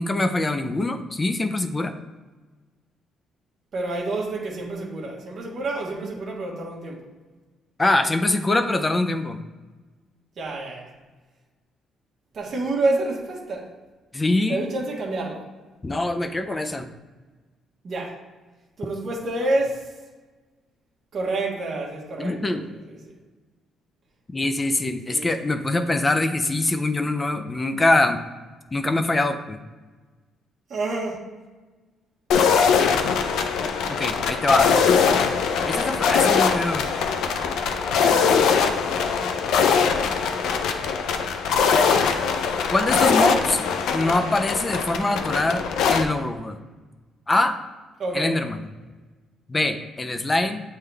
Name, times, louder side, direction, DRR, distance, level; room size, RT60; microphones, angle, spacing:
voice 1, 0.0-1.9 7.8-9.4 14.1-14.7 15.8-16.9 22.2-22.7 24.3-28.2 28.7-29.6 33.9-34.7 35.6-36.9 42.7-43.6 43.9-46.6 47.3-47.6 48.1-48.6 49.5-50.6, left 2 dB, 15° left, 8 dB, 0.4 m, -23 dB
voice 2, 3.7-7.0 10.4-10.9 12.3-13.7 14.5-15.4 17.8-18.1 18.8-19.9 21.1-23.1 25.1-25.3 30.7-31.3 43.2-43.4 48.0-48.4, right 2 dB, 35° right, -3 dB, 1.3 m, -28 dB
sound 1, 32.3-46.0, left 6 dB, 70° left, 0.5 m, -21 dB
7.7 x 3.6 x 3.4 m, 1.3 s
cardioid pair, 180°, 0 cm